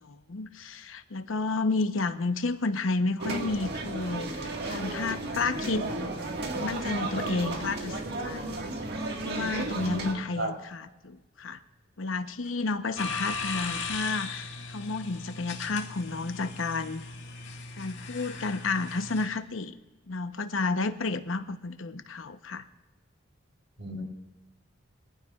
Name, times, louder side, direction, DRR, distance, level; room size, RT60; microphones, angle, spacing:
voice 1, 0.0-5.9 6.5-8.6 9.2-11.6 12.0-17.0 17.8-19.8 20.1-22.6, left 3 dB, 90° left, 9 dB, 0.9 m, -31 dB
sound 1, 3.2-10.1, right 2 dB, 55° right, 1.7 m, -33 dB
voice 2, 9.8-10.5 23.8-24.0, right 1 dB, 70° right, 1 dB, 3.6 m, -34 dB
sound 2, 13.0-19.3, left 4 dB, 70° left, 1.9 m, -37 dB
23.5 x 15.0 x 2.4 m, 1.1 s
head